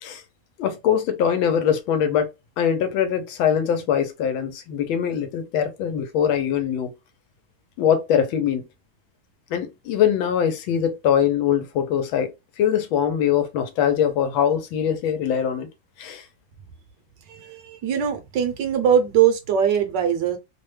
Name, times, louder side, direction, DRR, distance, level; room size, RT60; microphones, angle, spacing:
voice 1, 0.6-2.3 2.6-6.9 7.8-8.7 9.5-12.3 12.6-15.7 16.0-16.3, left 8 dB, 90° left, 1.4 m, -22 dB
voice 2, 17.3-20.4, right 8 dB, 70° right, 1.2 m, -21 dB
3.3 x 2.1 x 3.1 m
omnidirectional pair, 2.1 m